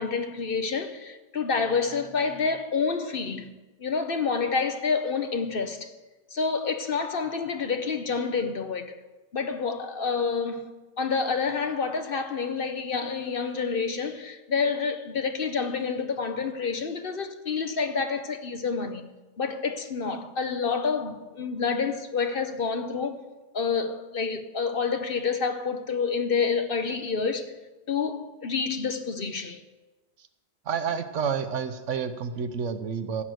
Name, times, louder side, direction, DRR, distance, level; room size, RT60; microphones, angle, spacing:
voice 1, 0.0-3.5 3.8-5.9 6.3-8.9 9.3-10.7 11.0-19.1 19.4-23.2 23.5-27.5 27.9-29.6, left 5 dB, 50° left, 1.0 m, -28 dB
voice 2, 30.7-33.2, right 6 dB, 70° right, 1.2 m, -29 dB
15.5 x 6.0 x 7.9 m
omnidirectional pair, 1.3 m